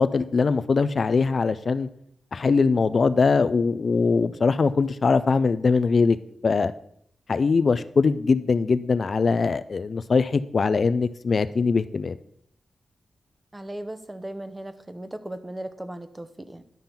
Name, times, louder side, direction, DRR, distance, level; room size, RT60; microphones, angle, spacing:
voice 1, 0.0-1.9 2.3-6.2 6.4-6.7 7.3-12.2, left 4 dB, 55° left, 13 dB, 0.4 m, -22 dB
voice 2, 13.5-16.6, right 1 dB, 20° right, 11 dB, 0.7 m, -37 dB
10.5 x 3.8 x 5.8 m, 0.69 s
cardioid pair, 65°, 0 cm